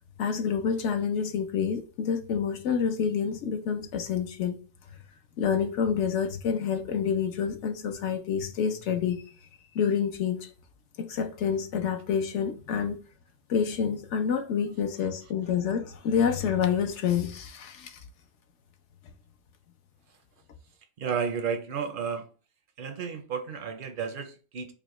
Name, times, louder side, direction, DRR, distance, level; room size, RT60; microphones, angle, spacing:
voice 1, 0.2-4.6 5.4-9.2 9.7-10.5 11.0-13.0 13.5-18.0, left 7 dB, 70° left, 0.9 m, -28 dB
voice 2, 21.0-22.3 22.8-24.7, right 6 dB, 60° right, 0.6 m, -32 dB
5.1 x 2.1 x 3.0 m
omnidirectional pair, 1.3 m